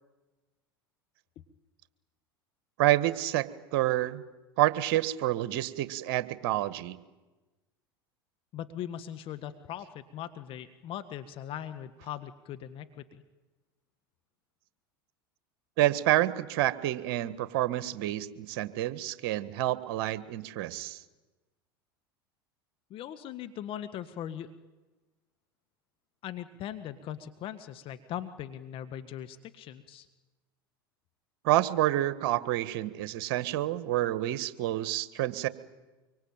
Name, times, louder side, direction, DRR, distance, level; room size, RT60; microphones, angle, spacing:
voice 1, 2.8-4.2 4.6-7.0 15.8-21.0 31.4-35.5, right 14 dB, 60° right, 14 dB, 1.6 m, -28 dB
voice 2, 8.5-13.2 22.9-24.5 26.2-30.1, left 10 dB, 45° left, 10 dB, 1.6 m, -40 dB
25.0 x 23.5 x 9.0 m, 1.2 s
hypercardioid pair, 85°, 12 cm